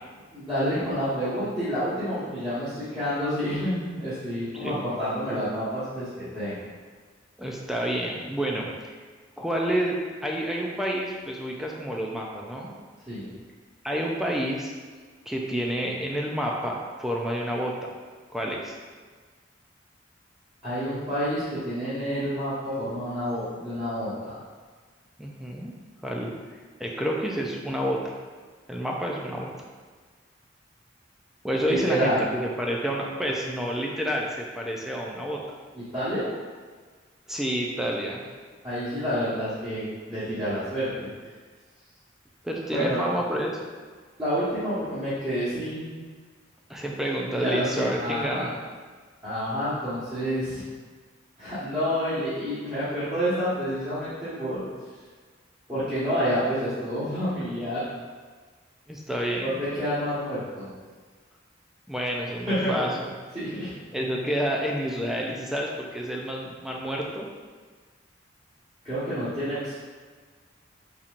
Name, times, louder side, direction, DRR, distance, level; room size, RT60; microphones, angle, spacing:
voice 1, 0.3-6.7 13.1-13.3 20.6-24.4 31.6-32.2 35.7-36.3 38.6-41.1 42.7-43.0 44.2-45.9 47.3-48.5 49.2-50.6 51.4-54.7 55.7-57.8 59.4-60.7 62.5-62.7 63.3-63.7 68.8-69.7, equal, 20° right, -15 dB, 1.4 m, -28 dB
voice 2, 7.4-8.7 9.4-10.0 10.2-12.7 13.8-14.7 15.3-17.9 18.3-18.7 25.2-25.7 26.0-26.3 26.8-28.1 28.7-29.5 31.4-35.6 37.3-38.3 42.4-43.6 46.7-48.6 58.9-59.6 61.9-63.1 63.9-67.3, equal, ahead, -2 dB, 0.4 m, -29 dB
4.4 x 4.2 x 2.5 m, 1.5 s
head